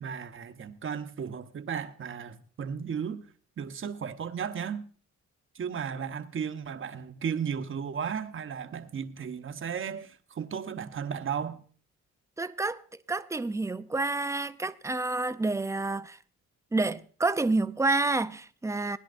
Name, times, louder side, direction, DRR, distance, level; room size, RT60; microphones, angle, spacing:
voice 1, 0.0-3.2 3.6-4.9 5.5-11.6, right 7 dB, 40° right, 1.0 m, -35 dB
voice 2, 12.4-12.8 13.1-16.2 16.7-19.0, right 3 dB, 10° right, 0.5 m, -29 dB
20.5 x 10.5 x 2.6 m
cardioid pair, 90°, 30 cm